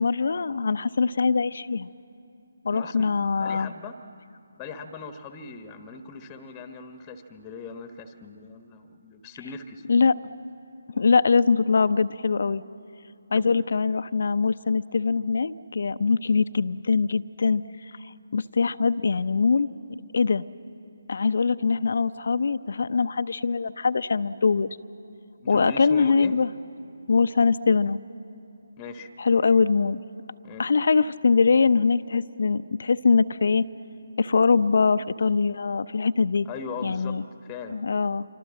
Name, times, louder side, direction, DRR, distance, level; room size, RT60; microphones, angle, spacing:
voice 1, 0.0-1.9 2.6-3.7 9.9-10.2 11.0-12.6 13.3-17.6 18.3-19.7 20.1-20.4 21.1-24.7 25.5-26.5 27.1-28.0 29.2-30.0 30.6-33.6 34.2-36.5 36.8-37.2 37.7-38.2, left 4 dB, 55° left, 14 dB, 0.7 m, -22 dB
voice 2, 2.7-3.1 3.4-4.0 4.6-10.0 13.3-13.6 25.4-26.3 28.8-29.1 30.4-30.6 36.4-37.1 37.4-37.8, left 4 dB, 15° left, 7 dB, 1.2 m, -40 dB
27.5 x 25.0 x 7.5 m, 2.7 s
figure-of-eight pair, 150°, 0 cm